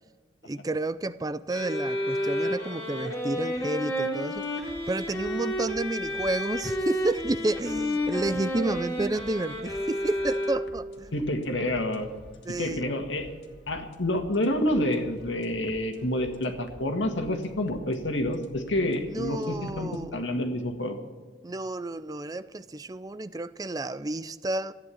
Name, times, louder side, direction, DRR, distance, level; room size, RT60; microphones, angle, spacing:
voice 1, 0.4-4.5 4.9-11.1 12.5-12.8 19.1-20.2 21.4-24.7, right 2 dB, 20° right, 14 dB, 0.4 m, -31 dB
sound 1, 1.5-10.9, equal, 15° left, 3.0 m, -31 dB
sound 2, 4.4-20.0, left 1 dB, 70° left, 1.6 m, -51 dB
voice 2, 11.1-12.1 12.6-13.3 13.7-21.0, left 1 dB, 85° left, 5 dB, 1.9 m, -28 dB
14.5 x 9.7 x 8.5 m, 1.5 s
head